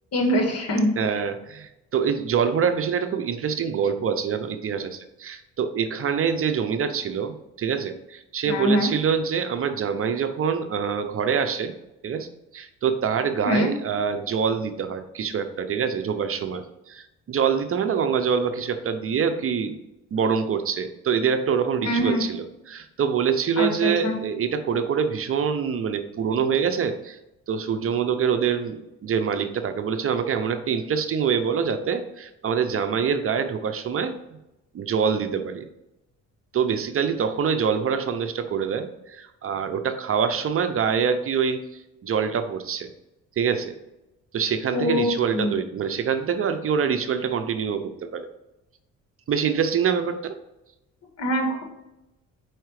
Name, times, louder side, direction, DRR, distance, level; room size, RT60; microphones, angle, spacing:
voice 1, 0.1-0.9 8.4-8.9 13.4-13.7 21.8-22.2 23.6-24.2 44.7-45.6 51.2-51.6, equal, 55° left, 3 dB, 1.6 m, -23 dB
voice 2, 1.0-11.7 12.0-12.3 12.5-19.8 20.1-27.2 27.5-34.1 34.7-35.7 36.5-41.6 42.0-42.9 43.4-43.7 44.3-48.3 49.3-50.3, right 7 dB, 45° right, 9 dB, 0.6 m, -25 dB
4.9 x 4.5 x 4.7 m, 0.91 s
cardioid pair, 90°, 30 cm